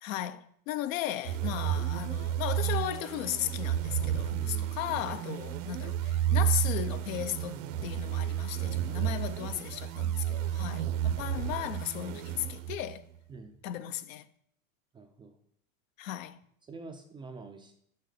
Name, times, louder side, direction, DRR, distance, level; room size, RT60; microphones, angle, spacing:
voice 1, 0.0-13.0 13.6-14.3 16.0-16.4, left 12 dB, 75° left, 0.7 m, -36 dB
sound 1, 1.2-13.0, right 11 dB, 65° right, 0.8 m, -31 dB
voice 2, 4.4-4.9 8.9-9.2 13.3-13.6 14.9-15.4 16.6-17.7, right 3 dB, 15° right, 0.3 m, -47 dB
6.5 x 5.9 x 6.4 m
supercardioid pair, 130°, 41 cm